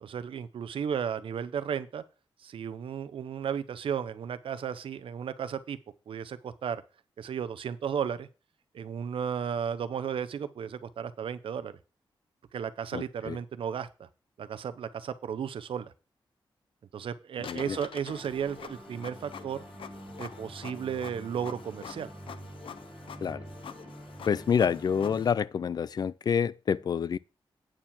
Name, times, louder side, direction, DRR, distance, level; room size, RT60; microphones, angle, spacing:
voice 1, 0.0-2.0 2.4-5.8 6.1-6.8 7.2-8.3 8.7-11.8 12.5-14.1 14.4-15.9 16.9-19.6 20.2-22.1, right 8 dB, 85° right, 0.7 m, -34 dB
voice 2, 12.9-13.4 17.4-17.8 23.2-23.4 24.3-27.2, left 7 dB, 50° left, 0.3 m, -28 dB
Printer, 17.4-25.3, left 7 dB, 85° left, 0.7 m, -46 dB
sound 1, 18.1-25.3, right 1 dB, 5° right, 1.8 m, -47 dB
8.8 x 4.5 x 7.3 m
wide cardioid pair, 155°, 9 cm